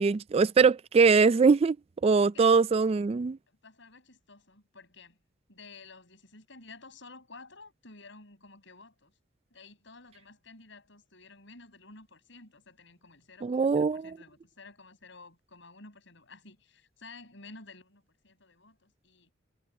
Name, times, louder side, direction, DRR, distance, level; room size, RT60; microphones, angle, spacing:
voice 1, 0.0-1.8 2.0-3.4 13.4-14.0, right 5 dB, 30° right, 0.3 m, -22 dB
voice 2, 3.5-5.2 5.5-9.1 9.5-19.3, left 3 dB, 65° left, 7.6 m, -52 dB
head